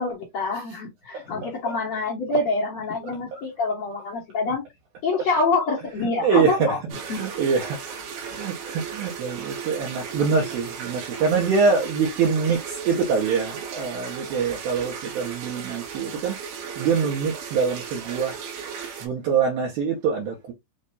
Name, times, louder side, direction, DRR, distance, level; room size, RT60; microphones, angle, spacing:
voice 1, 0.0-4.6 5.0-6.8 7.1-7.3, left 3 dB, 75° left, 1.5 m, -26 dB
voice 2, 1.1-1.8 3.3-3.4 5.1-5.3 5.9-8.0 8.3-18.7 19.0-20.5, right 5 dB, 70° right, 2.6 m, -25 dB
sound 1, 6.9-19.1, right 7 dB, 85° right, 3.9 m, -36 dB
7.4 x 2.6 x 2.6 m
omnidirectional pair, 5.0 m